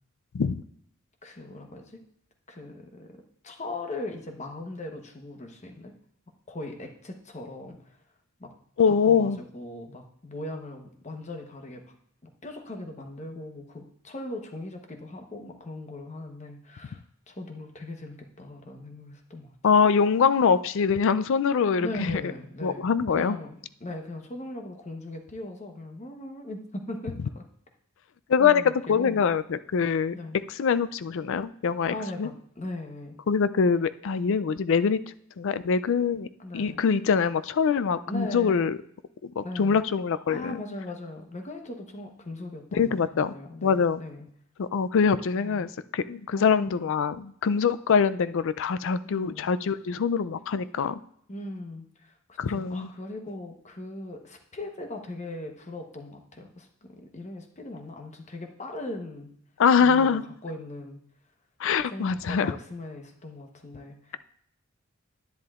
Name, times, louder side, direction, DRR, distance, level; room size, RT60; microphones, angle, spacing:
voice 1, 1.2-2.0 2.5-5.9 6.5-8.0 8.4-8.5 8.9-12.0 12.4-19.5 21.8-27.4 28.4-29.2 30.1-30.4 31.9-33.2 36.4-36.8 38.1-38.7 39.4-39.8 40.3-44.3 45.3-45.7 46.3-46.7 49.1-49.5 51.3-59.3 59.8-61.0 61.8-64.2, left 2 dB, 35° left, 4 dB, 1.0 m, -39 dB
voice 2, 8.8-9.4 19.6-22.2 22.6-23.4 28.3-30.1 30.5-32.3 33.3-35.0 35.4-36.3 36.5-38.8 39.2-40.6 42.7-43.4 43.6-44.0 44.6-51.0 52.4-52.9 59.6-60.2 61.6-62.5, left 6 dB, 65° left, 14 dB, 0.4 m, -24 dB
10.5 x 10.5 x 2.4 m, 0.68 s
head